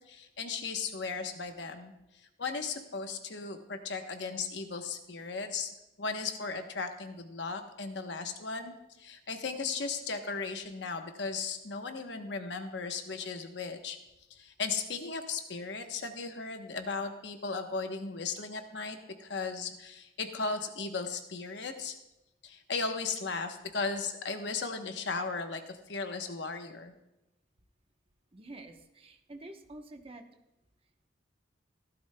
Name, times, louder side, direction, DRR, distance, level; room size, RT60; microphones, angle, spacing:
voice 1, 0.1-1.9 2.4-5.7 6.0-14.0 14.3-21.9 22.4-26.9, left 4 dB, 65° left, 6 dB, 0.9 m, -36 dB
voice 2, 28.3-30.2, right 2 dB, 30° right, 5 dB, 0.9 m, -48 dB
15.5 x 12.0 x 2.2 m, 0.92 s
head